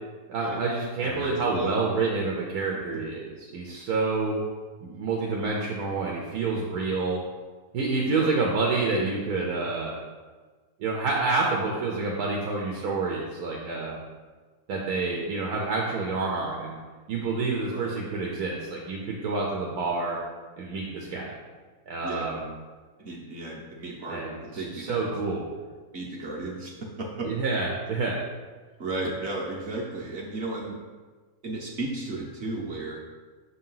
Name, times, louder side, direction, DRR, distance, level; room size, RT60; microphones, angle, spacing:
voice 1, 0.3-4.4 4.8-7.2 7.7-10.0 10.8-14.0 14.7-16.8 17.1-20.2 20.6-21.4 21.9-22.5 24.1-25.4 27.2-28.2, right 3 dB, 85° right, -2 dB, 1.3 m, -28 dB
voice 2, 1.0-1.8 2.9-3.0 8.0-8.3 17.7-17.9 22.0-22.3 23.0-25.1 25.9-27.3 28.8-30.8 31.4-33.0, right 2 dB, 50° right, -2 dB, 1.0 m, -34 dB
6.1 x 2.8 x 5.5 m, 1.4 s
omnidirectional pair, 1.6 m